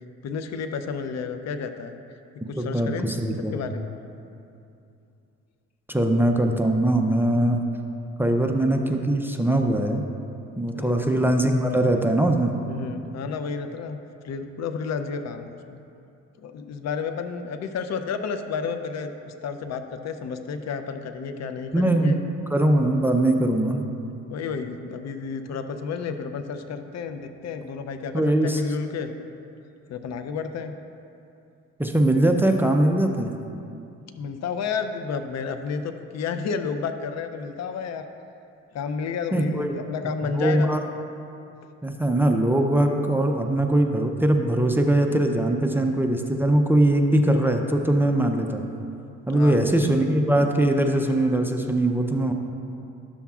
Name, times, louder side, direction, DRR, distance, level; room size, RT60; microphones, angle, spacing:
voice 1, 0.2-2.0 2.5-3.2 3.5-3.9 10.7-11.0 12.6-14.0 14.2-15.8 16.4-22.2 23.5-23.8 24.3-29.1 29.9-30.7 34.1-38.0 38.7-40.7 49.3-49.8, left 5 dB, 60° left, 8 dB, 0.5 m, -31 dB
voice 2, 2.6-3.7 5.9-7.6 8.2-10.0 10.6-12.5 21.7-22.2 22.5-23.8 28.1-28.6 31.8-33.3 39.3-39.8 40.3-40.8 41.8-48.6 49.3-52.3, right 1 dB, 5° right, 3 dB, 0.5 m, -21 dB
11.5 x 7.0 x 2.4 m, 2.6 s
cardioid pair, 90°, 30 cm